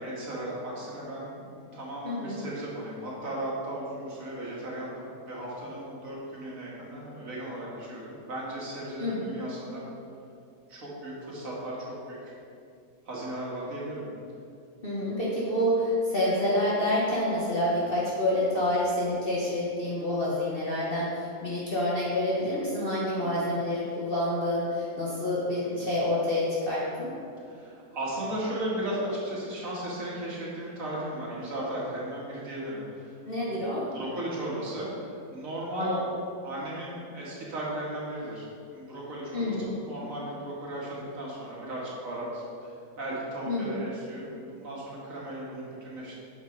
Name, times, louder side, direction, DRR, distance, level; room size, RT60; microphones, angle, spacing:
voice 1, 0.0-9.9 10.7-12.3 13.1-14.1 17.4-17.6 23.2-23.4 25.6-25.9 27.4-33.7 33.9-36.1 36.4-46.1, right 1 dB, 55° right, -6 dB, 2.3 m, -36 dB
voice 2, 2.0-2.4 9.0-9.3 14.8-27.1 33.2-33.9 35.8-36.0 39.3-39.7 43.4-43.8, left 1 dB, 35° left, -7 dB, 1.4 m, -28 dB
9.2 x 6.6 x 4.0 m, 2.5 s
omnidirectional pair, 1.7 m